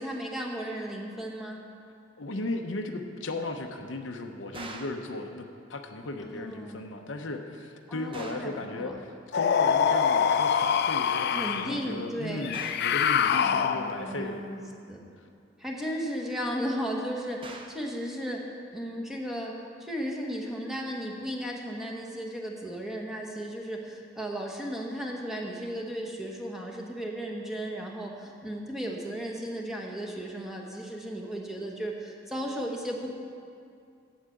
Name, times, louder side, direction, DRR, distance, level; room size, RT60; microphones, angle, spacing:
voice 1, 0.0-1.6 6.2-6.8 7.9-9.0 11.3-12.5 13.4-15.0 15.6-18.4 18.7-33.1, equal, ahead, -1 dB, 1.3 m, -35 dB
voice 2, 2.2-14.4, left 2 dB, 75° left, 4 dB, 0.8 m, -36 dB
sound 1, 4.5-5.1 8.1-8.6 12.5-13.0 17.4-17.9, right 3 dB, 25° right, 0.7 m, -43 dB
sound 2, 9.3-11.8 12.4-14.1, left 7 dB, 55° left, 0.4 m, -25 dB
8.4 x 8.1 x 7.8 m, 2.4 s
head